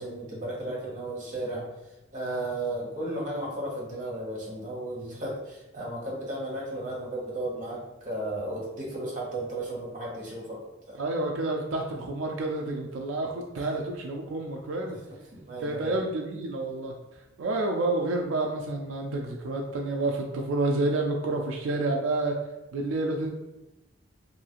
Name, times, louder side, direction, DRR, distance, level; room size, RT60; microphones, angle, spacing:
voice 1, 0.0-1.6 2.1-10.6 10.9-11.0 13.6-13.7 14.9-15.0 15.3-16.0, right 1 dB, 40° right, -4 dB, 0.9 m, -34 dB
voice 2, 11.0-15.0 15.6-16.9 17.4-22.3 22.7-23.3, right 2 dB, 85° right, 1 dB, 0.3 m, -29 dB
2.7 x 2.4 x 2.9 m, 0.97 s
head